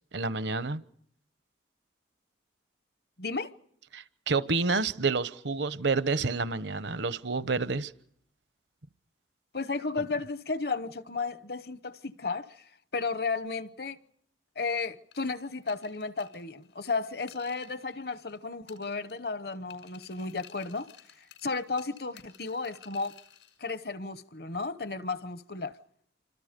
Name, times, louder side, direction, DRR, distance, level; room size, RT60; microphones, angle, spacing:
voice 1, 0.1-0.8 3.9-7.9, right 4 dB, 70° right, 1.0 m, -29 dB
voice 2, 3.2-3.5 9.5-12.6 12.9-14.0 14.6-20.9 21.4-23.2 23.6-25.7, left 4 dB, 55° left, 1.0 m, -33 dB
sound 1, 15.1-18.4 18.7-19.3 19.7-23.6, left 10 dB, 85° left, 5.9 m, -54 dB
27.5 x 25.5 x 5.2 m
head